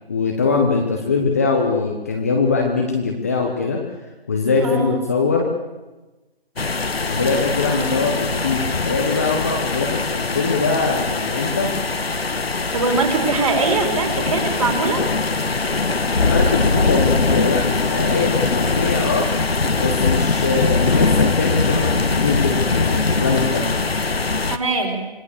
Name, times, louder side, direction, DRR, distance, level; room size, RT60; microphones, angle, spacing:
voice 1, 0.1-3.8 4.3-5.5 7.1-11.7 16.1-19.3 19.8-23.7, left 4 dB, 15° left, 1 dB, 1.2 m, -22 dB
voice 2, 4.6-5.0 7.7-8.0 12.7-15.0 24.4-25.0, right 3 dB, 35° right, 3 dB, 4.3 m, -22 dB
sound 1, 6.6-24.6, left 3 dB, 75° left, 1.6 m, -21 dB
26.0 x 20.0 x 6.8 m, 1.1 s
figure-of-eight pair, 170°, 30 cm